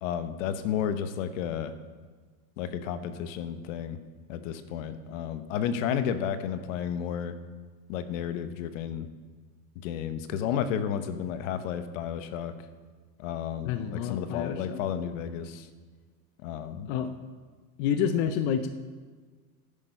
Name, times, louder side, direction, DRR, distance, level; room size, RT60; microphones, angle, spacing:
voice 1, 0.0-1.7 2.6-4.0 4.3-7.3 7.9-9.1 9.7-12.5 13.2-15.7 16.4-16.9, left 8 dB, 55° left, 10 dB, 1.0 m, -32 dB
voice 2, 13.6-14.8 16.9-17.1 17.8-18.7, left 8 dB, 30° left, 9 dB, 0.4 m, -28 dB
11.0 x 8.6 x 5.4 m, 1.5 s
supercardioid pair, 140°, 47 cm